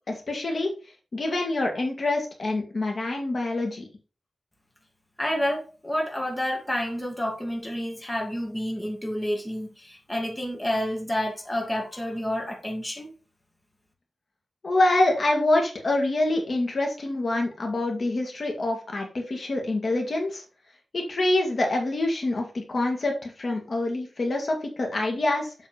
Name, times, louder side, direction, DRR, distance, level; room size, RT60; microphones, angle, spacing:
voice 1, 0.1-0.7 1.1-3.9 14.6-20.4 20.9-25.5, left 2 dB, 55° left, 2.0 m, -26 dB
voice 2, 5.2-13.1, equal, 15° left, 2.2 m, -29 dB
7.7 x 4.2 x 5.2 m
wide cardioid pair, 125°, 0 cm